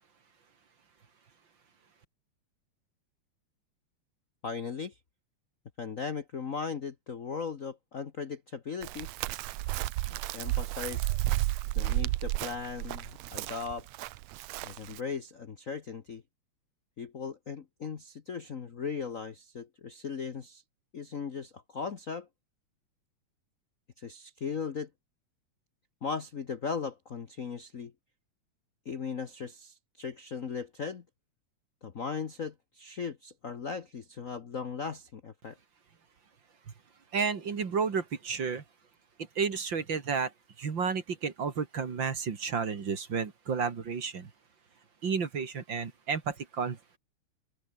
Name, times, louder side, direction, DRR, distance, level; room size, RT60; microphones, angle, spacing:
voice 1, 4.4-4.9 5.8-9.1 10.3-11.4 11.7-13.9 14.6-16.2 17.0-20.6 20.9-22.3 24.0-24.9 26.0-27.9 28.8-31.0 31.8-35.6, left 5 dB, 80° left, 0.7 m, -38 dB
Chirp tweet, 8.8-15.0, right 17 dB, 75° right, 1.8 m, -32 dB
voice 2, 37.1-38.6 39.4-40.3 40.6-44.3 45.0-47.0, right 5 dB, 40° right, 2.6 m, -31 dB
open air
omnidirectional pair, 3.4 m